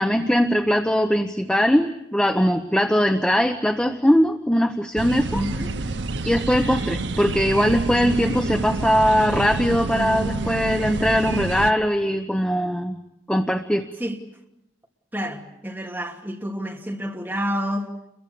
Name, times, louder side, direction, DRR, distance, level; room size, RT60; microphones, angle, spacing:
voice 1, 0.0-5.4 6.2-13.0 13.3-13.9, equal, 5° left, 0.9 m, -21 dB
sound 1, 5.0-11.7, right 3 dB, 90° right, 0.9 m, -28 dB
voice 2, 5.3-5.8 14.0-14.2 15.1-17.9, equal, 10° right, 3.0 m, -29 dB
30.0 x 23.0 x 7.0 m
head